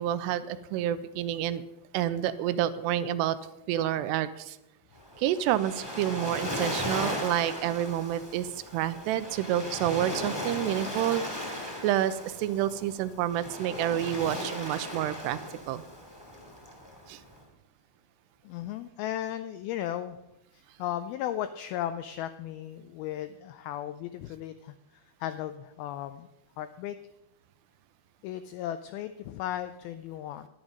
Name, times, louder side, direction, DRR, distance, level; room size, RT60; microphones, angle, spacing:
voice 1, 0.0-1.6 1.9-3.4 3.7-4.6 5.2-11.2 11.8-15.4 15.7-15.8 17.1-17.2, right 12 dB, 85° right, 13 dB, 2.7 m, -29 dB
Waves surf, 5.0-17.4, left 1 dB, 10° left, 1.4 m, -37 dB
voice 2, 18.4-20.2 20.5-24.7 25.2-26.3 26.6-27.0 28.2-30.5, left 11 dB, 85° left, 11 dB, 2.1 m, -35 dB
11.0 x 10.5 x 5.2 m, 0.90 s
omnidirectional pair, 4.9 m